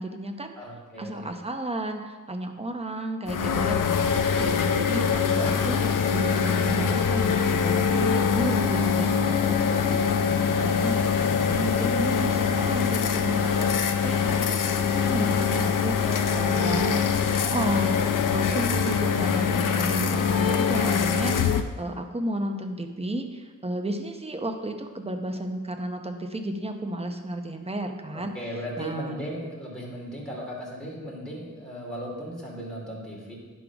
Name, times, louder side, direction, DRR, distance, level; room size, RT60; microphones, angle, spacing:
voice 1, 0.0-0.5 1.0-5.8 6.1-17.0 17.5-18.0 18.3-28.3 28.8-29.2, right 1 dB, 20° right, 5 dB, 0.8 m, -33 dB
voice 2, 0.6-1.3 5.3-6.0 15.9-16.7 28.1-33.3, equal, 5° left, -5 dB, 2.7 m, -37 dB
sound 1, 3.3-21.6, left 6 dB, 80° left, 0.6 m, -24 dB
10.5 x 3.8 x 5.9 m, 1.3 s
wide cardioid pair, 90°, 32 cm